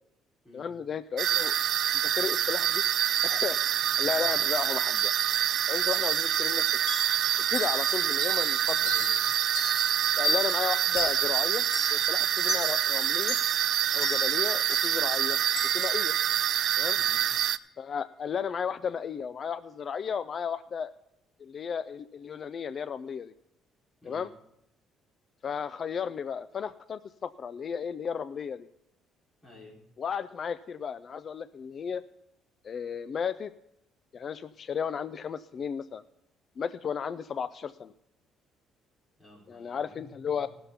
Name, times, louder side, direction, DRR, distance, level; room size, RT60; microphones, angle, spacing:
voice 1, 0.5-1.5 2.0-2.8 3.2-5.1 5.7-6.9 7.5-8.8 10.2-11.6 11.9-13.4 13.9-15.4 15.7-16.1 16.8-17.0 17.8-20.9 21.4-23.3 24.1-24.3 25.4-28.7 30.0-32.0 32.6-33.5 34.1-36.0 36.6-37.9 39.5-40.5, left 7 dB, 35° left, 13 dB, 0.3 m, -34 dB
sound 1, 1.2-17.6, right 11 dB, 50° right, 0.4 m, -26 dB
voice 2, 4.0-4.3 8.8-9.2 17.0-17.2 24.0-24.3 29.4-29.8 39.2-40.5, left 2 dB, 20° left, -4 dB, 4.5 m, -52 dB
sound 2, 6.9-17.1, left 2 dB, 65° left, 3.7 m, -37 dB
15.5 x 6.9 x 5.6 m, 0.83 s
cardioid pair, 160°, 0 cm